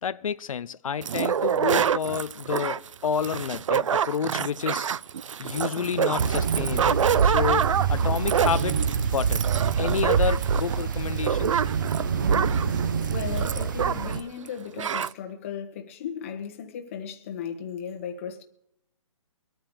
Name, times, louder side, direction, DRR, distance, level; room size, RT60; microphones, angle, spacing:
voice 1, 0.0-4.9 5.4-8.8 9.1-9.4 9.8-11.6, left 7 dB, 90° left, 0.5 m, -30 dB
sound 1, 1.0-14.2 14.5-14.6 14.8-15.1, right 8 dB, 70° right, 0.4 m, -27 dB
sound 2, 6.2-14.2, right 6 dB, 40° right, 0.7 m, -26 dB
voice 2, 13.1-18.4, left 8 dB, 25° left, 1.3 m, -36 dB
24.5 x 9.2 x 3.2 m
hypercardioid pair, 170°, 17 cm